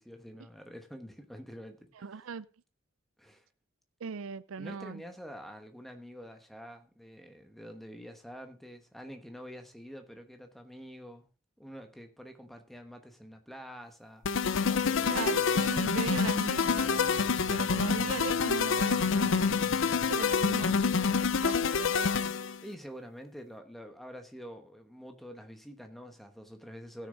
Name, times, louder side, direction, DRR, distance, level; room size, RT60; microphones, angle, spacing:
voice 1, 0.0-1.9 3.2-3.5 4.6-11.3 11.6-14.3 14.6-15.7 20.0-20.4 22.6-27.1, equal, ahead, 1.1 m, -47 dB
voice 2, 2.0-2.5 4.0-5.0 15.1-17.2 17.5-19.7 20.1-20.8 21.4-22.3, right 5 dB, 90° right, 0.5 m, -39 dB
sound 1, 14.2-22.6, left 5 dB, 70° left, 0.5 m, -27 dB
sound 2, 16.7-20.8, left 2 dB, 50° left, 2.9 m, -52 dB
16.0 x 6.6 x 3.8 m
head